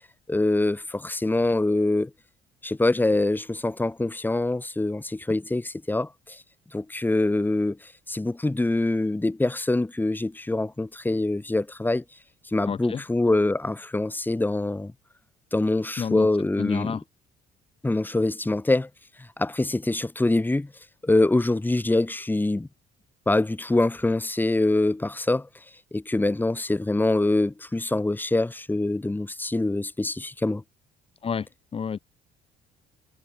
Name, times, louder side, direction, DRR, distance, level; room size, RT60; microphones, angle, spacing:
voice 1, 0.3-2.1 2.6-6.4 6.7-7.8 8.1-12.0 12.5-14.9 15.5-17.0 17.8-18.9 19.4-20.7 21.0-22.7 23.3-25.5 25.9-30.6, left 2 dB, 10° left, 4.3 m, -24 dB
voice 2, 12.7-13.0 16.0-16.3 16.6-17.0 31.2-32.0, left 6 dB, 35° left, 1.7 m, -30 dB
cardioid pair, 110°, 17 cm